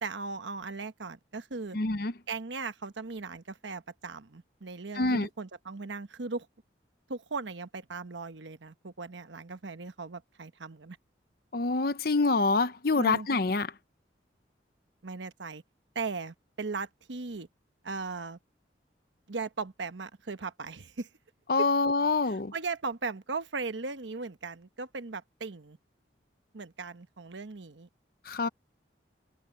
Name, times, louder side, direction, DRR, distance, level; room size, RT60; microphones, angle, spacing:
voice 1, 0.0-1.8 2.3-6.5 7.1-11.0 12.9-13.3 15.0-15.6 15.9-17.5 17.8-18.4 19.3-21.1 21.6-21.7 22.2-25.8 26.5-27.9, right 4 dB, 90° right, 1.1 m, -38 dB
voice 2, 1.7-2.1 5.0-5.3 11.5-13.7 21.5-22.5 28.3-28.5, left 3 dB, 55° left, 0.8 m, -26 dB
head